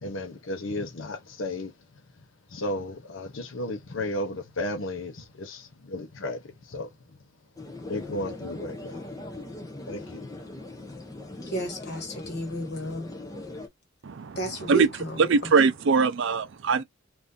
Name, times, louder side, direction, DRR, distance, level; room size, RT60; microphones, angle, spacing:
voice 1, 0.0-1.7 2.5-6.9 7.9-9.1 9.9-10.3, left 1 dB, 65° left, 0.7 m, -34 dB
sound 1, 7.6-13.7, left 2 dB, 15° left, 0.6 m, -40 dB
voice 2, 11.4-13.1 14.3-15.5, right 1 dB, 50° left, 1.6 m, -33 dB
voice 3, 14.0-14.4 14.7-14.9 15.2-16.8, right 5 dB, 60° right, 0.4 m, -22 dB
2.7 x 2.5 x 3.6 m
head